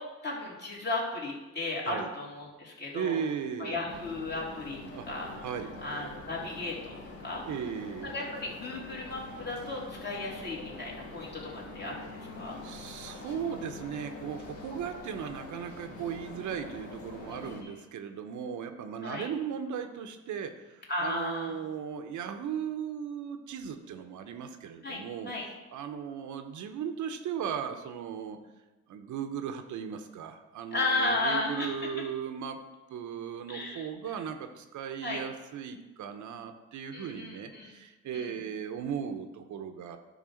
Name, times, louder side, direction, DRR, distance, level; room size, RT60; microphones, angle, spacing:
voice 1, 0.0-3.2 3.6-4.8 5.1-5.3 5.8-7.4 8.0-12.1 12.3-12.6 17.3-17.7 19.0-19.3 20.9-21.6 24.8-25.5 30.7-31.9 33.5-33.9 35.0-35.2 36.9-37.7 38.1-38.3, left 2 dB, 35° left, -4 dB, 2.9 m, -34 dB
voice 2, 2.9-3.8 4.9-5.1 5.4-5.8 7.5-8.1 12.6-25.3 25.7-28.4 28.9-32.6 32.9-40.0, right 8 dB, 75° right, 7 dB, 0.8 m, -37 dB
sound 1, 3.9-17.6, left 2 dB, 50° left, 1.7 m, -45 dB
11.0 x 3.7 x 6.3 m, 1.1 s
cardioid pair, 90°, 30 cm